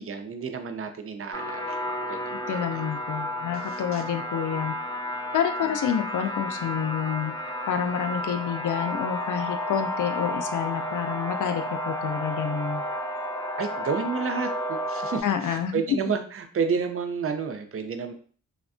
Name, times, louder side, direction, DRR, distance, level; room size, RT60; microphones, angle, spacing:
voice 1, 0.0-2.8 3.7-4.0 13.6-18.1, right 5 dB, 50° right, 7 dB, 0.4 m, -31 dB
sound 1, 1.3-15.2, left 1 dB, 10° left, 0.5 m, -32 dB
voice 2, 2.5-4.7 5.3-12.8 15.2-16.0, left 8 dB, 80° left, 8 dB, 0.5 m, -28 dB
3.4 x 2.1 x 2.4 m, 0.43 s
cardioid pair, 85°, 30 cm